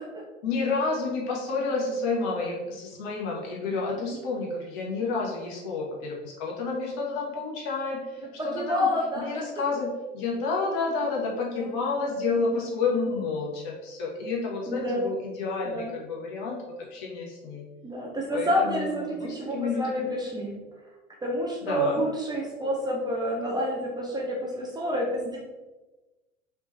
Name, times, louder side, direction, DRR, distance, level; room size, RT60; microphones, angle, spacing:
voice 1, 0.4-8.9 9.1-17.6 18.3-20.1 21.6-22.0, left 4 dB, 45° left, -2 dB, 1.4 m, -30 dB
voice 2, 8.5-9.4 11.5-12.1 12.4-12.6 12.9-13.0 14.7-15.1 15.7-15.9 17.8-20.5 21.2-25.4, equal, 10° right, -2 dB, 0.7 m, -29 dB
5.0 x 3.2 x 3.2 m, 1.1 s
figure-of-eight pair, 85°, 36 cm